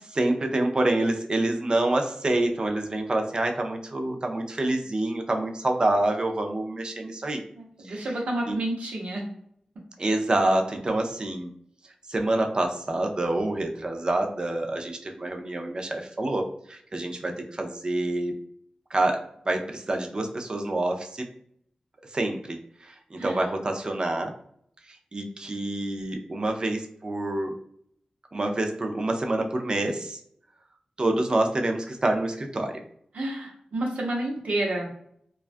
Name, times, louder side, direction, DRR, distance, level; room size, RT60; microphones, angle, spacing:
voice 1, 0.2-7.4 7.8-8.1 8.5-8.6 10.0-11.5 12.1-18.3 18.9-21.3 22.1-22.6 22.8-24.3 25.1-27.5 28.3-30.2 31.0-32.8, right 2 dB, 35° right, 4 dB, 0.4 m, -27 dB
voice 2, 7.6-9.2 17.0-17.3 23.2-23.4 33.1-34.9, right 1 dB, 80° right, -1 dB, 0.8 m, -30 dB
2.3 x 2.2 x 2.5 m, 0.67 s
wide cardioid pair, 75°, 2 cm